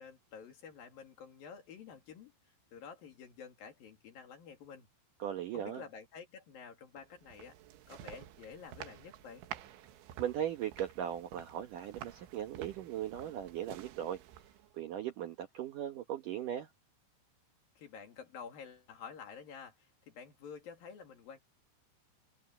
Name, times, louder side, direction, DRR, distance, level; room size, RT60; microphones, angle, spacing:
voice 1, 0.0-2.3 2.7-4.9 5.5-7.6 7.9-9.4 17.8-21.4, left 6 dB, 55° left, 3.8 m, -50 dB
voice 2, 5.2-5.8 10.2-14.2 14.7-16.7, right 10 dB, 65° right, 2.1 m, -38 dB
sound 1, 7.0-14.8, right 11 dB, 85° right, 3.8 m, -51 dB
omnidirectional pair, 5.3 m